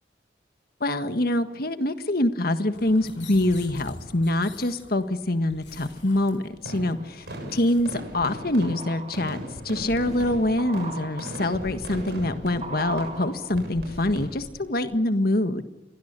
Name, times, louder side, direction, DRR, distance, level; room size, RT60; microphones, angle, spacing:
voice 1, 0.8-7.2 7.5-9.4 9.6-15.6, left 1 dB, 55° left, 9 dB, 1.6 m, -25 dB
sound 1, 2.7-8.0, left 2 dB, 85° left, 7.9 m, -46 dB
sound 2, 5.6-6.3 6.8-14.7 14.9-15.0, right 2 dB, 35° right, 2.9 m, -40 dB
sound 3, 6.7-14.3, equal, 60° right, 6.9 m, -39 dB
28.5 x 22.5 x 6.9 m, 1.0 s
head